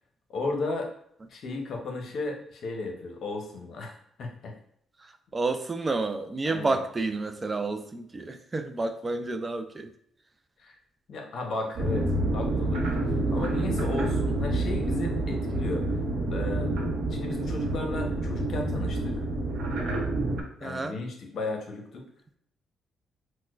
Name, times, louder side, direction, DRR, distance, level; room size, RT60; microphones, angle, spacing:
voice 1, 0.3-0.9 1.3-3.9 4.2-4.5 6.5-6.8 10.6-10.7 11.1-15.9 16.3-16.7 17.1-19.2 20.6-22.1, left 3 dB, 60° left, 2 dB, 0.7 m, -34 dB
voice 2, 5.0-9.9 20.6-20.9, right 3 dB, 25° right, 8 dB, 0.3 m, -30 dB
sound 1, 11.8-20.4, right 2 dB, 70° right, 0.7 m, -28 dB
4.3 x 2.1 x 2.4 m, 0.69 s
cardioid pair, 90°, 0 cm